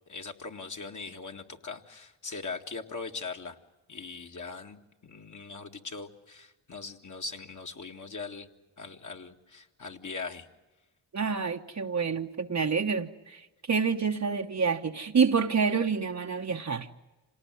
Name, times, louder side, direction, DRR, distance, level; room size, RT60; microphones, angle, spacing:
voice 1, 0.1-3.6 3.9-8.5 8.8-10.5, left 4 dB, 40° left, 4 dB, 2.0 m, -40 dB
voice 2, 11.1-13.4 13.7-16.9, right 5 dB, 35° right, 4 dB, 1.1 m, -27 dB
26.5 x 18.5 x 9.4 m, 1.2 s
supercardioid pair, 50°, 46 cm